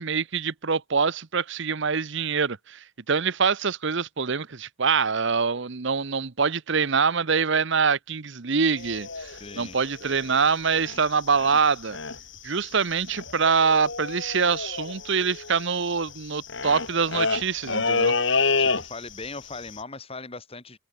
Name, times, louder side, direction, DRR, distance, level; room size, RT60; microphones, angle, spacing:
voice 1, 0.0-12.0 12.4-18.1, right 5 dB, 60° right, 0.9 m, -25 dB
sound 1, 8.8-11.1 11.4-11.6 11.9-12.4 12.6-12.7 12.9-19.3 19.5-19.8, left 4 dB, 60° left, 3.0 m, -28 dB
voice 2, 9.4-9.8 18.6-20.8, left 3 dB, 30° left, 2.5 m, -39 dB
head